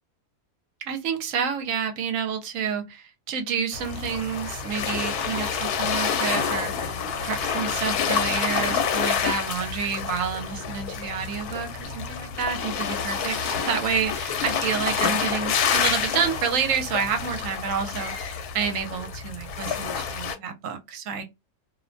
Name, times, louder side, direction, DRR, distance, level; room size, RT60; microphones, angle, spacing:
voice 1, 0.8-21.2, right 7 dB, 70° right, 0.9 m, -29 dB
sound 1, 3.7-20.4, left 7 dB, 85° left, 1.1 m, -28 dB
2.5 x 2.1 x 2.5 m
omnidirectional pair, 1.6 m